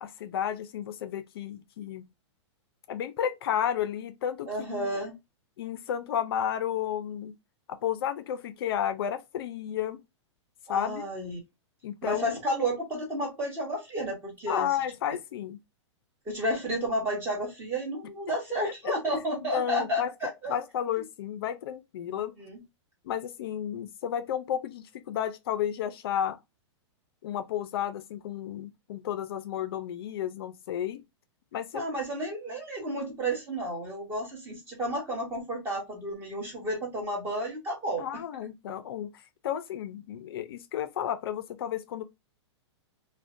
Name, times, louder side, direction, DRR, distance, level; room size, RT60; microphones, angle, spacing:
voice 1, 0.0-2.0 2.9-4.9 5.6-7.3 7.8-10.0 10.7-11.1 11.8-12.3 14.5-15.6 18.6-18.9 19.5-20.1 20.5-22.3 23.1-26.4 27.2-31.0 31.5-31.8 38.0-39.1 39.4-42.0, left 9 dB, 55° left, 0.4 m, -32 dB
voice 2, 4.5-5.1 10.7-11.4 12.0-14.7 16.3-20.5 22.4-22.6 31.7-38.0, right 1 dB, 15° right, 1.0 m, -32 dB
2.4 x 2.1 x 2.4 m
hypercardioid pair, 160°, 15 cm